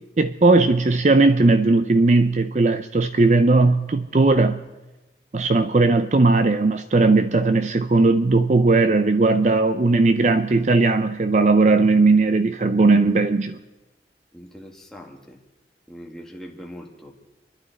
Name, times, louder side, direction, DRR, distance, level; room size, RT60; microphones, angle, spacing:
voice 1, 0.2-4.6 5.3-13.6, right 3 dB, 40° right, 0.5 m, -18 dB
voice 2, 14.3-15.4 15.9-17.1, equal, 5° left, 1.9 m, -41 dB
30.0 x 12.0 x 4.1 m
head